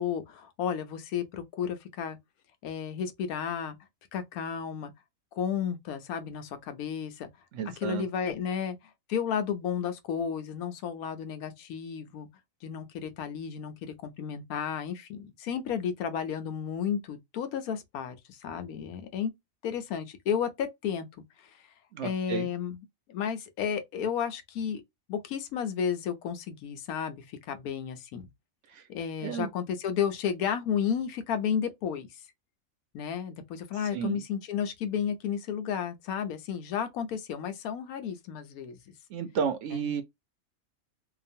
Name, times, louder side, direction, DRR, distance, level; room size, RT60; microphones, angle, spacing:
voice 1, 0.0-2.2 2.6-3.8 4.1-4.9 5.3-7.3 7.8-8.8 9.1-12.3 12.6-19.3 19.6-21.1 22.0-22.8 23.1-24.8 25.1-28.3 28.9-32.1 32.9-38.9 39.7-39.9, left 8 dB, 90° left, 1.1 m, -32 dB
voice 2, 7.5-8.0 21.9-22.5 28.7-28.8 29.2-29.5 33.9-34.2 39.1-40.0, right 7 dB, 70° right, 0.8 m, -32 dB
2.8 x 2.4 x 2.6 m
omnidirectional pair, 1.5 m